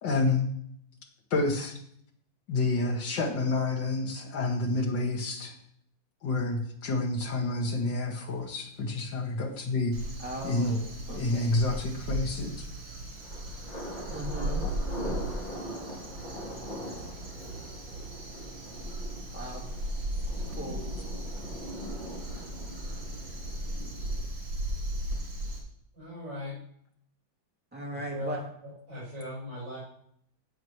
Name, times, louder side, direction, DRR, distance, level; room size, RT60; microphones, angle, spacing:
voice 1, 0.0-0.5 1.3-1.7 2.5-5.5 6.2-9.9 10.4-10.8 11.1-12.6, left 2 dB, 70° left, -1 dB, 2.5 m, -29 dB
Crow, 9.9-25.6, right 1 dB, 85° right, 3.9 m, -36 dB
voice 2, 10.2-11.6 14.1-14.7 19.3-19.7 20.3-20.8 27.7-28.5, equal, 5° right, -3 dB, 2.5 m, -38 dB
sound 1, 13.2-24.3, equal, 25° left, 1.6 m, -42 dB
voice 3, 25.9-26.6 28.1-28.4 28.9-29.8, equal, 70° right, -9 dB, 5.7 m, -38 dB
16.5 x 7.2 x 3.2 m, 0.68 s
omnidirectional pair, 2.1 m